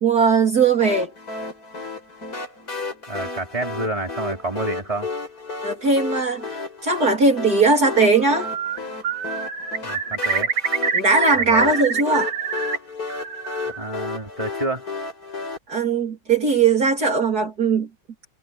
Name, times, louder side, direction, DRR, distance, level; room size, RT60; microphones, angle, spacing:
voice 1, 0.0-1.1 5.6-6.4 6.8-8.5 10.9-12.3 15.7-17.9, right 4 dB, 50° right, 3.7 m, -19 dB
sound 1, 0.8-15.6, left 4 dB, 45° left, 6.6 m, -33 dB
voice 2, 3.1-5.1 9.8-10.5 11.3-11.7 13.8-14.8, right 2 dB, 15° right, 4.3 m, -28 dB
Bird, 8.2-8.8 9.0-12.8 13.1-13.9, right 5 dB, 75° right, 2.8 m, -25 dB
omnidirectional pair, 2.2 m